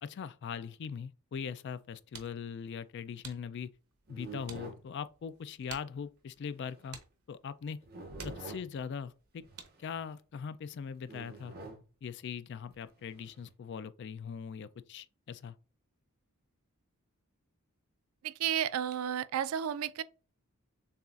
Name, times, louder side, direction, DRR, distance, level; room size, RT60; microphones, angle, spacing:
voice 1, 0.0-3.7 4.1-7.0 7.3-7.8 8.2-9.4 9.8-11.5 12.0-15.6, left 6 dB, 50° left, 0.3 m, -41 dB
sound 1, 1.7-10.0, right 7 dB, 90° right, 0.8 m, -55 dB
sound 2, 4.1-4.9 6.6-6.8 7.8-8.8 9.4-10.0 11.1-11.9 12.7-13.5, right 2 dB, 45° right, 0.8 m, -47 dB
voice 2, 18.2-20.0, right 9 dB, 75° right, 0.3 m, -32 dB
6.8 x 2.4 x 2.4 m
head